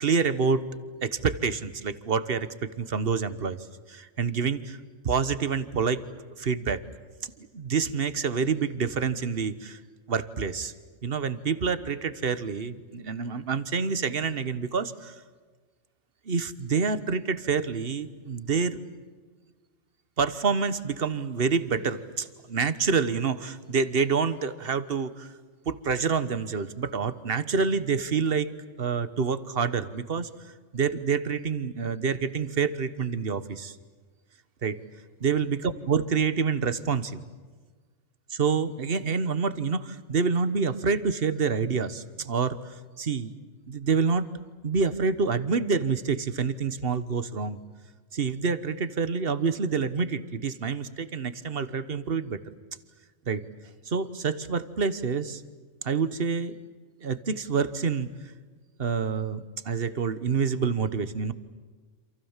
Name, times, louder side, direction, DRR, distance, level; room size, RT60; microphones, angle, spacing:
voice 1, 0.0-3.6 3.9-4.8 5.0-6.0 6.4-6.8 7.2-9.8 10.1-10.7 11.0-15.1 16.3-18.8 20.2-25.3 25.7-28.5 28.8-30.3 30.7-33.7 34.6-34.8 35.2-35.6 35.9-37.2 38.4-42.6 43.0-43.3 43.7-44.3 44.6-47.6 48.1-52.4 53.3-53.4 53.9-55.4 55.8-56.5 57.0-58.1 58.8-61.3, right 5 dB, 45° right, 14 dB, 1.3 m, -27 dB
28.5 x 27.5 x 7.4 m, 1.4 s
omnidirectional pair, 1.4 m